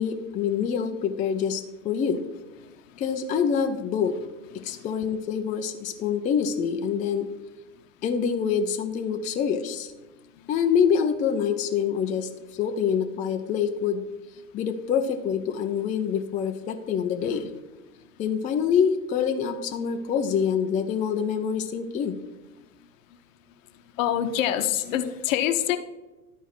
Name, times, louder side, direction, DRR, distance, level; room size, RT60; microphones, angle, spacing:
voice 1, 0.0-2.2 3.0-4.2 4.6-7.3 8.0-9.9 10.5-14.0 14.5-17.5 18.2-22.2, left 7 dB, 15° left, 5 dB, 0.4 m, -26 dB
voice 2, 24.0-25.8, left 11 dB, 55° left, 9 dB, 0.8 m, -25 dB
11.0 x 4.5 x 5.9 m, 1.1 s
figure-of-eight pair, 80°, 46 cm